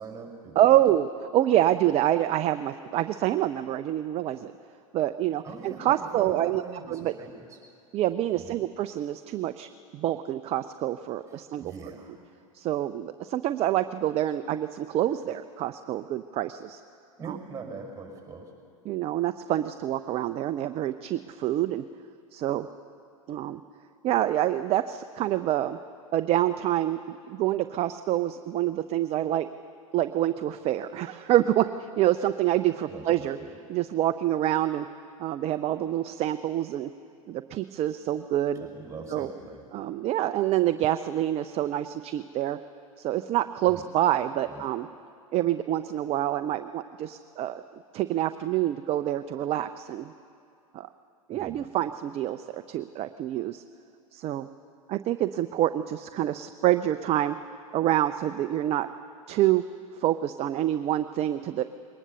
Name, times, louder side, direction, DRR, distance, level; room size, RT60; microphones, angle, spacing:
voice 1, 0.0-0.7 5.4-7.6 8.3-8.6 11.3-12.2 17.2-18.5 32.9-33.5 38.5-39.8 43.7-43.8 44.4-44.6 51.3-51.7, right 4 dB, 15° right, 2 dB, 5.6 m, -42 dB
voice 2, 0.6-4.5 4.9-6.6 6.9-7.1 7.9-11.7 12.5-16.8 17.3-17.4 18.9-21.8 22.3-22.7 23.3-23.6 24.0-25.8 26.1-29.5 29.9-33.4 33.7-34.9 35.2-36.9 37.3-38.7 39.1-39.3 39.7-42.6 43.0-44.9 45.3-47.6 47.9-50.1 50.7-50.9 51.3-53.6 54.1-54.5 54.9-57.4 57.7-58.9 59.3-59.6 60.0-61.6, right 13 dB, 35° right, 11 dB, 0.5 m, -27 dB
21.5 x 19.0 x 6.9 m, 2.5 s
figure-of-eight pair, 90°, 18 cm